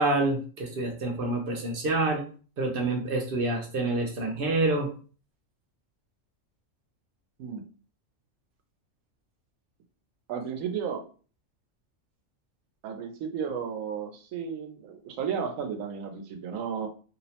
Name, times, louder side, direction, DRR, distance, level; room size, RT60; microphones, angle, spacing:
voice 1, 0.0-2.2 2.6-4.9, right 2 dB, 60° right, 2 dB, 0.6 m, -27 dB
voice 2, 10.3-11.0 12.8-16.9, right 7 dB, 85° right, 6 dB, 1.0 m, -33 dB
2.7 x 2.0 x 2.7 m, 0.39 s
omnidirectional pair, 1.3 m